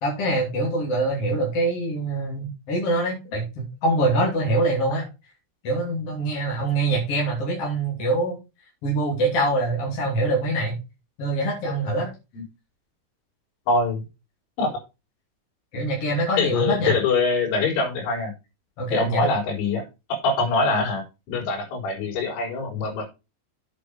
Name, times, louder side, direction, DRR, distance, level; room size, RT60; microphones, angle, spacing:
voice 1, 0.0-3.4 3.8-5.0 5.6-8.4 8.8-10.8 11.2-12.1 15.7-17.0 18.8-19.3, right 2 dB, 35° left, -3 dB, 3.3 m, -24 dB
voice 2, 13.7-14.0 14.6-14.7 16.4-18.3 18.9-19.8 20.1-23.1, left 3 dB, 70° left, -2 dB, 6.0 m, -24 dB
8.4 x 6.9 x 5.1 m, 0.27 s
omnidirectional pair, 5.7 m